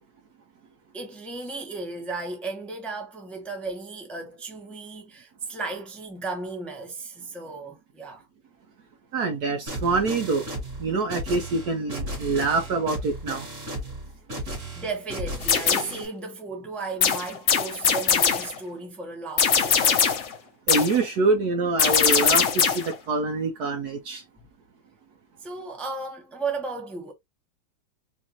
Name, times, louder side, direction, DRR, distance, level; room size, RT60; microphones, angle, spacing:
voice 1, 0.9-8.3 14.7-20.1 25.4-27.1, right 3 dB, ahead, 0.5 m, -35 dB
voice 2, 9.1-10.4 10.8-13.6 20.7-24.2, right 3 dB, 65° right, 1.2 m, -25 dB
sound 1, 9.7-16.1, right 1 dB, 40° right, 2.3 m, -35 dB
sound 2, 15.4-16.0 17.0-18.6 19.4-20.3 20.7-21.0 21.8-23.0, left 6 dB, 55° left, 0.8 m, -21 dB
4.5 x 2.5 x 2.9 m
omnidirectional pair, 2.1 m